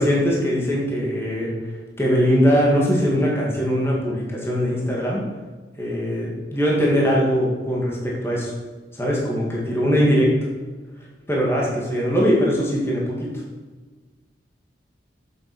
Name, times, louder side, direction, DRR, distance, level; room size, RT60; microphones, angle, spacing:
voice 1, 0.0-1.5 2.0-5.2 5.8-8.5 9.0-10.3 11.3-13.3, equal, 15° left, -4 dB, 2.3 m, -21 dB
8.0 x 7.7 x 6.3 m, 1.3 s
head